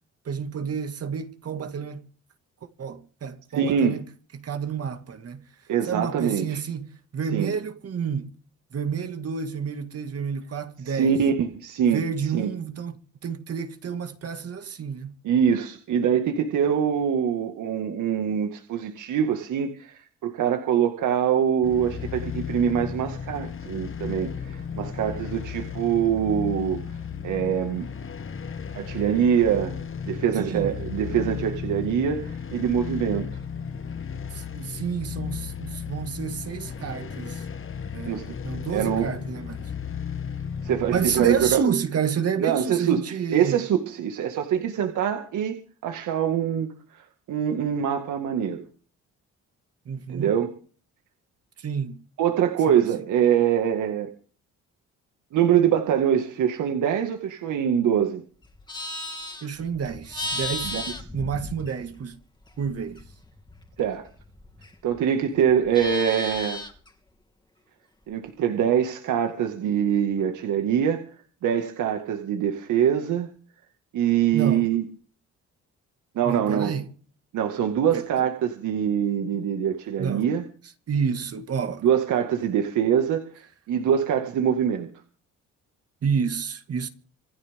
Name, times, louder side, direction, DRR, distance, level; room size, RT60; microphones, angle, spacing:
voice 1, 0.3-2.0 2.8-4.0 4.3-5.4 5.9-6.9 7.1-8.3 8.7-11.2 11.9-13.0 13.2-15.1 30.4-30.7 34.3-37.4 37.9-39.7 40.9-43.7 49.9-50.4 51.6-52.0 52.7-52.8 59.4-60.7 61.1-62.2 62.6-63.0 74.3-74.7 76.2-76.9 77.9-78.0 80.0-80.3 80.9-81.8 86.0-86.9, right 6 dB, 55° right, 2.1 m, -29 dB
voice 2, 3.5-4.0 5.7-6.6 7.3-7.5 10.8-12.0 12.3-12.5 15.2-26.8 27.2-27.9 28.7-29.8 30.1-33.3 38.1-38.3 38.7-39.1 40.6-41.6 42.4-45.6 45.8-48.7 50.1-50.5 52.2-54.1 55.3-58.2 60.6-60.8 63.8-64.0 64.8-66.6 68.1-71.0 71.4-73.3 73.9-74.8 76.2-76.7 77.3-80.4 81.8-83.3 83.7-84.9, right 8 dB, 80° right, 2.0 m, -24 dB
sound 1, 21.6-41.6, left 7 dB, 45° left, 1.9 m, -34 dB
Livestock farm animals working animals, 58.4-62.1 62.4-65.0 65.3-66.9, left 1 dB, 15° left, 2.9 m, -35 dB
26.5 x 11.5 x 3.7 m
cardioid pair, 90°, 30 cm